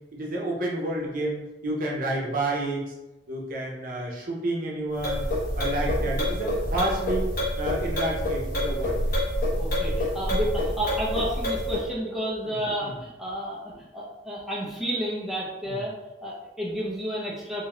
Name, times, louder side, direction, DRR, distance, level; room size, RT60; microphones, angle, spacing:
voice 1, 0.1-2.8 3.3-5.2 5.6-7.2 7.6-9.0 12.4-13.0 15.7-15.8, right 1 dB, 50° right, -2 dB, 0.8 m, -30 dB
sound 1, 4.9-11.9, left 1 dB, 50° left, 1.0 m, -27 dB
voice 2, 9.6-15.9 16.2-17.7, equal, ahead, -6 dB, 0.6 m, -31 dB
3.5 x 2.8 x 3.0 m, 1.0 s
head